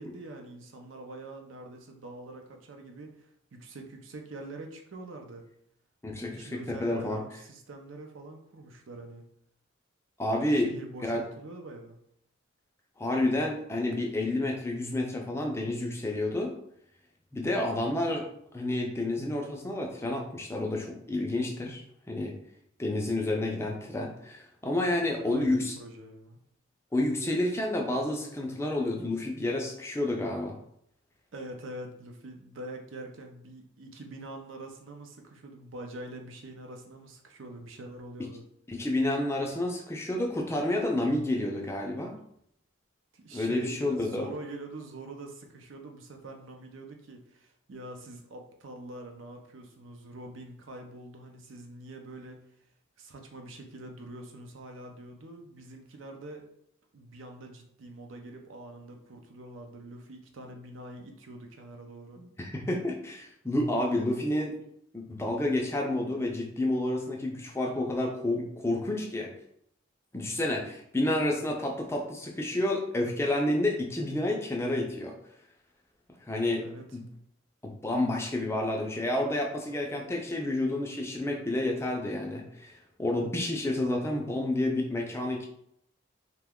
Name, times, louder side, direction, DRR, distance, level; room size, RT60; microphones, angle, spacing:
voice 1, 0.0-5.4 6.1-9.3 10.5-12.0 25.1-26.4 31.3-38.4 43.1-52.4 53.0-56.4 56.9-62.3 76.6-77.0, right 2 dB, 75° right, 3 dB, 0.5 m, -44 dB
voice 2, 6.0-7.2 10.2-10.7 11.0-11.2 13.0-16.5 17.3-18.3 18.5-22.3 22.8-25.7 26.9-30.5 38.7-42.1 43.3-44.3 62.4-64.6 64.9-69.3 70.1-75.1 76.3-76.6 76.9-77.0 77.6-85.5, left 1 dB, 15° left, 1 dB, 0.4 m, -30 dB
2.9 x 2.2 x 3.5 m, 0.72 s
head